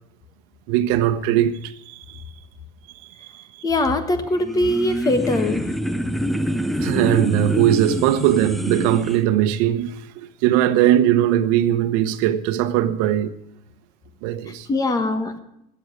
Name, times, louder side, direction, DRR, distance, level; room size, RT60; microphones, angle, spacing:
voice 1, 0.7-2.2 2.9-3.6 6.8-13.3 14.2-14.7, right 11 dB, 75° right, 1.0 m, -20 dB
voice 2, 3.6-5.7 14.7-15.4, left 2 dB, 20° left, 1.4 m, -21 dB
sound 1, 4.3-9.2, equal, ahead, 0.5 m, -26 dB
13.5 x 7.9 x 9.6 m
cardioid pair, 145°, 19 cm